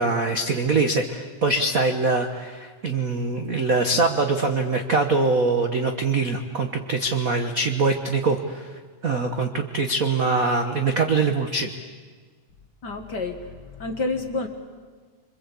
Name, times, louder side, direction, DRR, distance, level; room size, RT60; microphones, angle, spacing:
voice 1, 0.0-11.7, right 3 dB, 70° right, 5 dB, 0.8 m, -23 dB
voice 2, 12.8-14.5, left 3 dB, 40° left, 5 dB, 1.7 m, -29 dB
26.5 x 25.5 x 8.4 m, 1.5 s
omnidirectional pair, 3.6 m